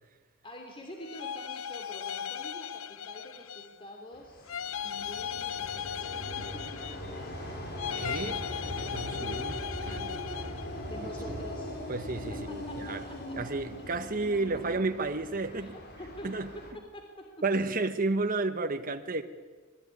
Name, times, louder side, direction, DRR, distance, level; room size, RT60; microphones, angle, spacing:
voice 1, 0.4-4.5 4.8-7.4 10.9-11.7 12.3-13.4 15.6-17.0, left 1 dB, 25° left, 2 dB, 3.1 m, -47 dB
sound 1, 1.0-3.8 4.5-7.3 7.8-10.7, left 8 dB, 75° left, 0.8 m, -37 dB
sound 2, 4.1-16.7, equal, 55° left, 5.8 m, -40 dB
voice 2, 8.0-8.4 8.8-10.2 11.0-11.4 11.9-13.0 13.4-15.7 16.2-16.5 17.4-19.2, right 3 dB, 40° right, 7 dB, 1.2 m, -32 dB
25.5 x 20.0 x 9.8 m, 1.4 s
head